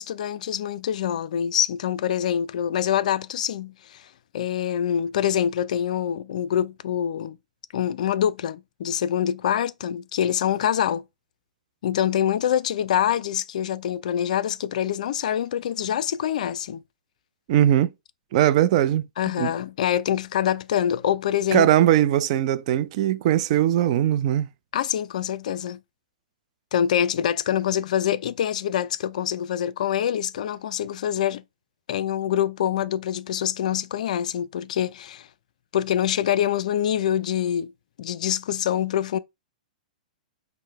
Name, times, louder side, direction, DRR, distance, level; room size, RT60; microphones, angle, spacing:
voice 1, 0.0-4.1 4.3-7.4 7.7-11.0 11.8-16.8 19.2-21.7 24.7-25.8 26.7-31.4 31.9-35.3 35.7-37.7 38.0-39.2, left 10 dB, 60° left, 0.3 m, -25 dB
voice 2, 17.5-17.9 18.3-19.1 19.4-19.5 21.5-24.5, right 11 dB, 50° right, 0.4 m, -20 dB
5.5 x 2.0 x 3.1 m
hypercardioid pair, 110°, 4 cm